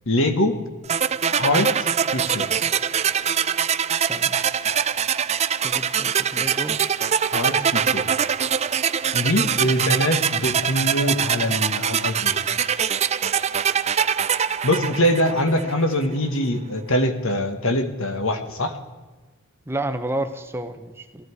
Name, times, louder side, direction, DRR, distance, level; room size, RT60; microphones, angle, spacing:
voice 1, 0.1-0.6 1.3-2.5 7.3-8.1 9.1-12.4 14.6-18.8, left 1 dB, 65° left, 7 dB, 1.6 m, -23 dB
sound 1, 0.9-15.8, right 8 dB, 30° right, 0.4 m, -23 dB
voice 2, 4.0-4.4 5.6-6.8 9.8-10.2 19.7-21.2, right 1 dB, 10° right, 7 dB, 0.8 m, -31 dB
19.0 x 14.0 x 4.8 m, 1.3 s
head